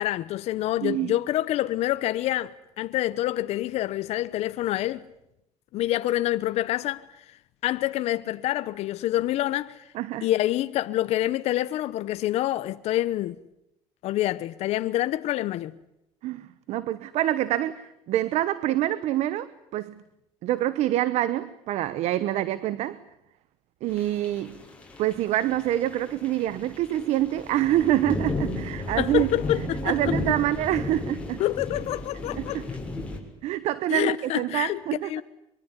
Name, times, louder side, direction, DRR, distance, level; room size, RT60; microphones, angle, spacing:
voice 1, 0.0-5.1 5.7-7.2 7.6-9.8 10.2-13.4 14.0-15.7 29.0-30.1 31.4-32.6 33.9-35.2, left 14 dB, 70° left, 1.0 m, -27 dB
voice 2, 0.8-1.2 9.9-10.3 16.2-20.0 20.4-23.0 23.8-24.6 25.0-29.3 29.8-31.4 32.3-32.6 33.4-35.1, right 13 dB, 70° right, 1.1 m, -26 dB
sound 1, 23.9-33.2, left 2 dB, 10° left, 6.7 m, -34 dB
24.0 x 23.5 x 9.8 m
cardioid pair, 125°, 11 cm